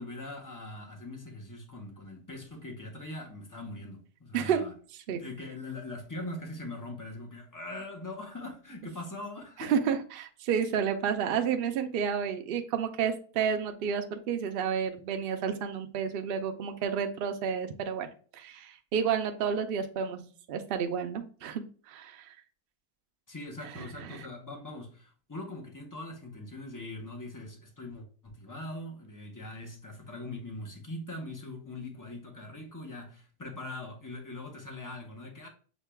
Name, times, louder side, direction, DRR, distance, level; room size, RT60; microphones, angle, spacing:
voice 1, 0.0-4.7 5.1-9.8 23.3-35.5, left 2 dB, 30° left, 0.4 m, -42 dB
voice 2, 4.3-4.7 5.1-5.2 9.6-18.1 18.3-22.4 23.7-24.3, right 7 dB, 75° right, 0.5 m, -31 dB
6.3 x 2.2 x 3.4 m
omnidirectional pair, 1.6 m